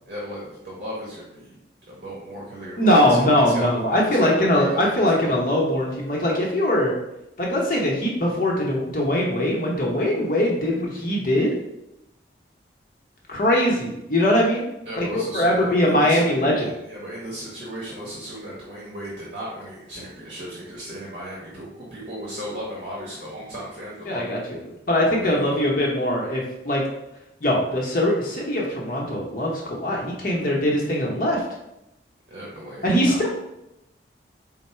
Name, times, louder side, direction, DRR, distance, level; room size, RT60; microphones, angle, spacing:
voice 1, 0.1-1.6 1.9-5.4 14.8-16.3 16.6-24.4 25.2-25.7 32.3-33.2, equal, 45° right, -4 dB, 0.9 m, -36 dB
voice 2, 2.8-6.9 7.4-11.6 13.3-14.7 15.0-16.7 24.1-24.6 24.9-26.8 27.4-31.4 32.8-33.3, left 1 dB, 50° left, -2 dB, 0.8 m, -21 dB
4.5 x 2.0 x 4.2 m, 0.90 s
head